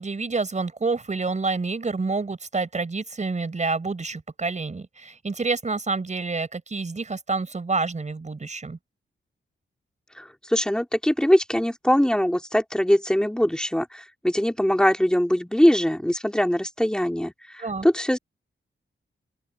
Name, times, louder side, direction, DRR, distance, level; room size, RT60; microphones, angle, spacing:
voice 1, 0.0-8.8 17.6-17.9, right 3 dB, 35° right, 5.5 m, -28 dB
voice 2, 10.2-18.2, equal, 5° left, 2.9 m, -22 dB
open air
wide cardioid pair, 140°, 21 cm